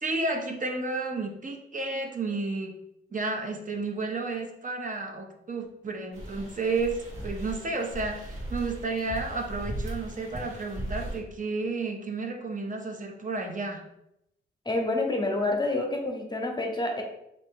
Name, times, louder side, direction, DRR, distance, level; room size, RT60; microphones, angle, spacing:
voice 1, 0.0-2.7 3.1-13.8, right 3 dB, 40° right, 3 dB, 0.7 m, -32 dB
sound 1, 6.1-11.2, right 1 dB, 80° right, 1.2 m, -37 dB
voice 2, 14.7-17.0, left 2 dB, 20° left, 2 dB, 0.8 m, -28 dB
3.1 x 2.5 x 3.6 m, 0.81 s
cardioid pair, 60°, 20 cm